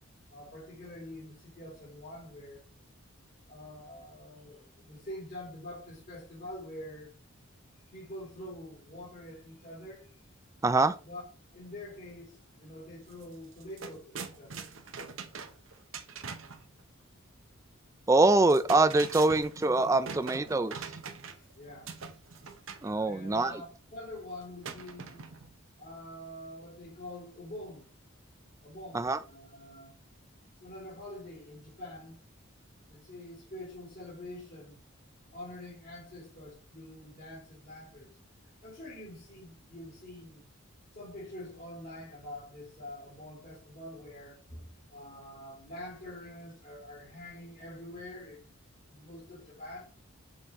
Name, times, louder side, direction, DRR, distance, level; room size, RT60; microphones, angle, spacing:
voice 1, 0.3-2.6 3.5-7.1 7.9-10.1 11.0-11.2 11.5-14.7 21.3-22.0 23.0-23.6 23.9-25.3 25.8-27.9 28.6-30.0 30.6-32.2 32.9-34.8 35.3-38.2 38.4-40.5 40.9-48.5 48.9-49.8, left 1 dB, 45° left, 3.0 m, -46 dB
voice 2, 10.6-10.9 18.1-20.8 22.8-23.5 28.9-29.2, right 2 dB, 15° right, 0.3 m, -24 dB
sound 1, 13.1-13.2 13.5-16.6 18.3-21.5 21.9-22.9 24.6-25.5, right 5 dB, 70° right, 0.8 m, -43 dB
6.7 x 4.3 x 3.7 m
head